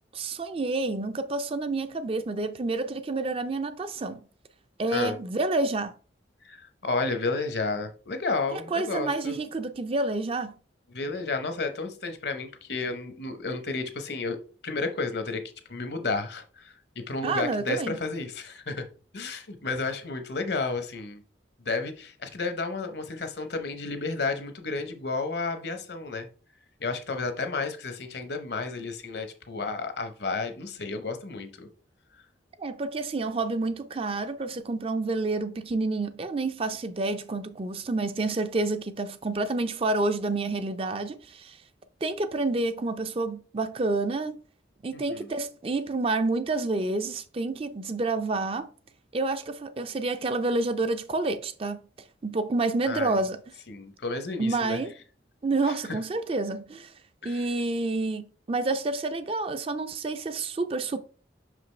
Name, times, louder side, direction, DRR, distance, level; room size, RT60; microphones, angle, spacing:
voice 1, 0.1-4.2 4.8-5.9 8.5-10.6 17.2-18.0 32.6-41.6 42.0-44.4 44.8-48.7 49.1-51.8 52.2-53.4 54.4-54.9 55.4-56.9 57.2-61.0, right 3 dB, 30° right, 0.4 m, -29 dB
voice 2, 6.4-9.4 10.9-15.4 15.7-18.9 19.1-21.2 21.6-26.3 26.8-31.7 44.9-45.3 52.9-53.1 53.7-54.8 57.2-57.4, left 3 dB, 65° left, 0.8 m, -32 dB
5.9 x 5.0 x 3.2 m
head